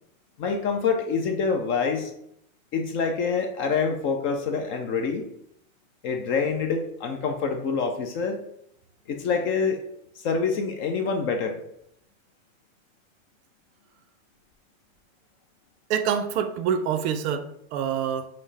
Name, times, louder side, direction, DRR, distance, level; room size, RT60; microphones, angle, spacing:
voice 1, 0.4-2.1 2.7-5.3 6.0-8.4 9.1-9.8 10.2-11.6, left 5 dB, 30° left, 5 dB, 0.4 m, -26 dB
voice 2, 15.9-18.3, right 8 dB, 55° right, 8 dB, 0.5 m, -26 dB
5.3 x 2.0 x 3.2 m, 0.74 s
supercardioid pair, 125°, 41 cm